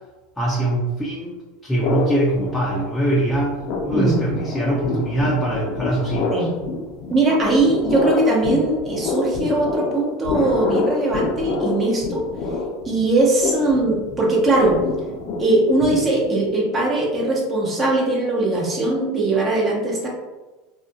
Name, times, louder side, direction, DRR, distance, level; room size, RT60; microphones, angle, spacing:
voice 1, 0.4-3.6 3.8-6.5, right 1 dB, 10° left, -5 dB, 0.5 m, -22 dB
sound 1, 1.8-3.1 3.3-16.5, left 3 dB, 60° left, 0.5 m, -27 dB
voice 2, 7.1-12.2 12.8-14.8 15.4-20.1, right 2 dB, 30° right, -3 dB, 0.9 m, -20 dB
2.4 x 2.3 x 2.8 m, 1.2 s
supercardioid pair, 105°, 0 cm